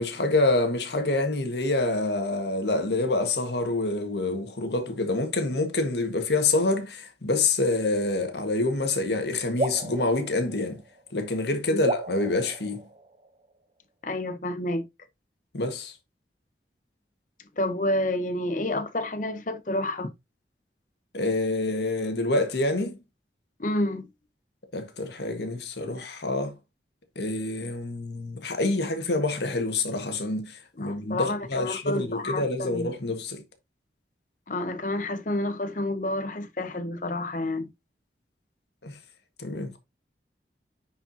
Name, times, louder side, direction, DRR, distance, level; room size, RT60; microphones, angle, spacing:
voice 1, 0.0-10.8 11.1-12.8 15.5-15.9 21.1-23.0 24.7-26.5 27.1-33.4 38.8-39.0 39.4-39.8, left 2 dB, 75° left, 1.6 m, -27 dB
sound 1, 9.6-11.2 11.8-13.5, right 2 dB, 35° right, 0.7 m, -34 dB
voice 2, 14.0-14.8 17.6-20.1 23.6-24.1 30.8-32.9 34.5-37.7, left 1 dB, 45° left, 0.9 m, -29 dB
9.7 x 4.6 x 2.8 m
head